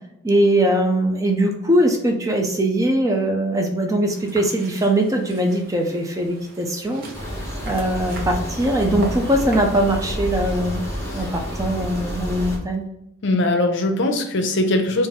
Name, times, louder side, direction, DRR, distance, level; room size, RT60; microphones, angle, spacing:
voice 1, 0.2-7.1 7.7-10.8 11.1-12.8, right 1 dB, 15° right, 3 dB, 0.4 m, -21 dB
sound 1, 4.0-9.6, right 2 dB, 45° right, 0.7 m, -40 dB
sound 2, 7.1-12.6, equal, 15° left, 1.0 m, -29 dB
voice 2, 13.2-15.1, left 1 dB, 55° left, 4 dB, 0.6 m, -21 dB
3.8 x 2.6 x 3.6 m, 0.85 s
head